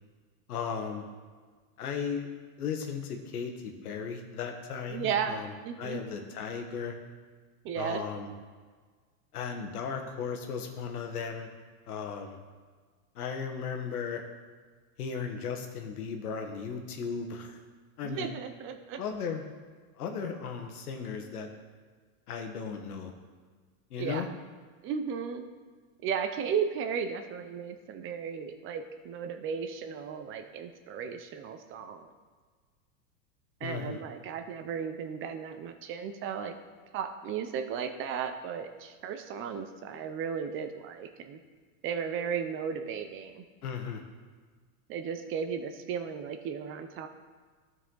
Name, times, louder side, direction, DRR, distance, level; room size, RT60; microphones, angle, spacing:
voice 1, 0.5-1.0 1.8-2.3 2.6-7.0 7.7-8.3 9.3-11.5 11.9-12.4 13.1-14.2 15.0-17.6 18.0-18.3 19.0-19.4 20.0-21.5 22.3-23.1 23.9-24.3 33.6-34.0 43.6-44.0, left 6 dB, 85° left, 4 dB, 1.4 m, -36 dB
voice 2, 4.9-5.4 5.6-6.0 7.6-8.0 18.0-19.0 24.0-24.3 24.8-25.4 26.0-32.1 33.6-36.5 36.9-41.4 41.8-43.4 44.9-47.1, right 7 dB, 30° right, 8 dB, 0.5 m, -35 dB
13.0 x 4.8 x 3.9 m, 1.5 s
supercardioid pair, 130°, 43 cm